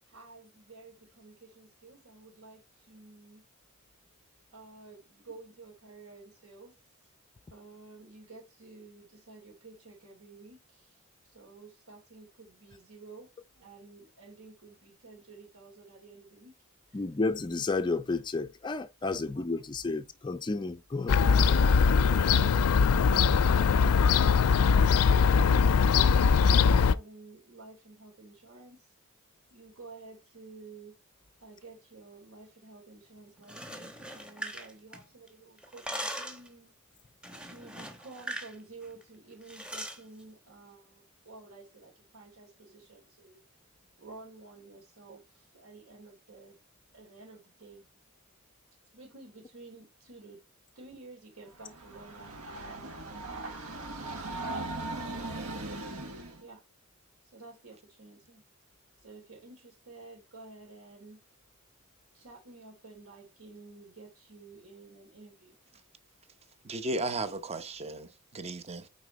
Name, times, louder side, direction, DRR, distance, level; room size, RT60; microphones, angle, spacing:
voice 1, 0.1-3.4 4.5-6.7 7.5-13.3 13.5-16.5 16.9-17.0 19.2-20.0 21.5-22.7 23.0-25.8 26.1-28.9 29.5-30.9 31.4-36.7 37.4-43.4 44.0-46.6 46.9-47.8 48.9-50.4 50.7-54.7 56.4-56.6 57.3-58.4 59.0-61.2 62.1-65.6, right 3 dB, 75° right, 3.0 m, -51 dB
voice 2, 16.9-21.2, left 3 dB, 20° left, 0.4 m, -31 dB
Fowl / Gull seagull, 21.1-26.9, left 6 dB, 90° left, 0.4 m, -22 dB
sound 1, 33.4-35.3 35.6-36.5 37.2-38.6 38.8-39.0 39.5-40.0, right 1 dB, 5° right, 1.1 m, -40 dB
Train, 51.5-56.4, right 2 dB, 90° right, 1.4 m, -39 dB
voice 3, 66.6-68.9, right 2 dB, 30° right, 0.8 m, -35 dB
8.5 x 4.1 x 4.1 m
head